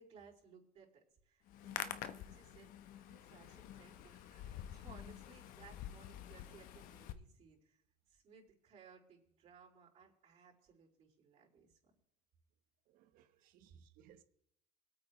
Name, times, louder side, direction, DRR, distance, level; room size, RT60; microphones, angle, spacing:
voice 1, 0.0-2.7 3.0-7.8 8.1-11.8 13.2-13.4 13.8-13.9, right 5 dB, 50° right, 5.0 m, -62 dB
Hands, 1.5-7.1, left 11 dB, 70° left, 1.0 m, -48 dB
voice 2, 4.1-4.4 12.9-14.2, right 10 dB, 70° right, 1.2 m, -66 dB
24.0 x 8.8 x 3.2 m
cardioid pair, 130°, 15 cm